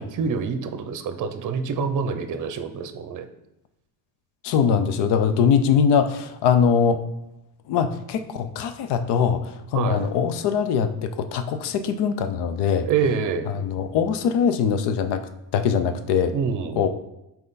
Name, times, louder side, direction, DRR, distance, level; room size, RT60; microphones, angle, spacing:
voice 1, 0.0-3.3 9.7-10.0 12.9-13.5 16.3-16.8, right 6 dB, 45° right, 9 dB, 0.7 m, -26 dB
voice 2, 4.4-7.0 7.7-12.9 13.5-15.2 15.5-16.3 16.8-16.9, left 7 dB, 70° left, 10 dB, 0.7 m, -22 dB
5.4 x 4.5 x 4.1 m, 0.90 s
cardioid pair, 155°, 43 cm